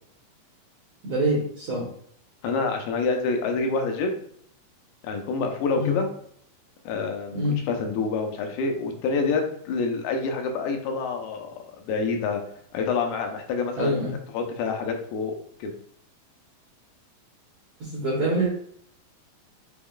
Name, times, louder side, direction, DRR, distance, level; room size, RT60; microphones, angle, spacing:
voice 1, 1.0-1.8 5.7-6.0 7.3-7.6 13.8-14.1 17.8-18.5, right 1 dB, 65° right, -5 dB, 1.6 m, -25 dB
voice 2, 2.4-4.2 5.0-6.1 6.9-7.4 7.7-12.4 12.7-15.3 15.6-15.7, left 4 dB, 85° left, 4 dB, 2.5 m, -27 dB
6.1 x 3.7 x 2.3 m, 0.64 s
omnidirectional pair, 4.4 m